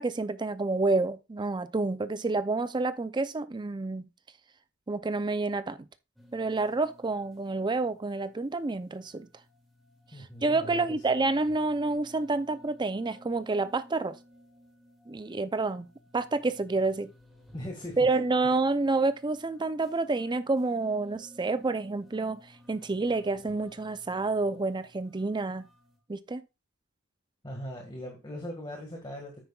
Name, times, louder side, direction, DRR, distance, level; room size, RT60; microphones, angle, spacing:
voice 1, 0.0-4.1 4.9-5.8 6.3-9.3 10.4-14.2 15.1-15.9 16.1-17.1 18.0-22.4 22.7-25.7 26.1-26.4, right 3 dB, 20° right, 0.5 m, -28 dB
sound 1, 6.2-26.0, left 1 dB, ahead, 2.2 m, -57 dB
voice 2, 10.1-10.8 17.5-18.1 27.4-29.4, equal, 20° left, 1.8 m, -39 dB
9.4 x 9.1 x 2.4 m
head